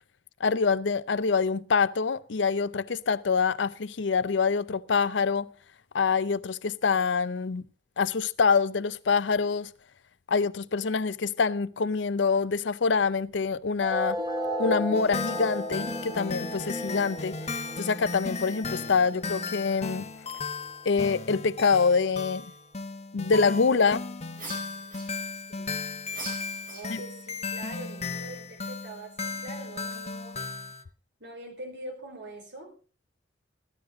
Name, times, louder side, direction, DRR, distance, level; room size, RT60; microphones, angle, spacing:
voice 1, 0.4-5.5 5.9-7.6 8.0-9.7 10.3-14.2 14.6-17.4 17.8-20.1 20.8-22.4 23.1-24.0 26.9-27.0, left 5 dB, 85° left, 0.6 m, -25 dB
sound 1, 13.8-20.8, equal, 20° right, 3.2 m, -35 dB
sound 2, 14.9-30.8, left 3 dB, 35° left, 1.0 m, -36 dB
sound 3, 24.3-25.5 26.1-27.3, right 2 dB, 45° right, 5.1 m, -42 dB
voice 2, 25.3-25.7 26.7-30.5 31.2-32.7, right 1 dB, 75° right, 4.6 m, -43 dB
14.5 x 11.5 x 3.8 m
head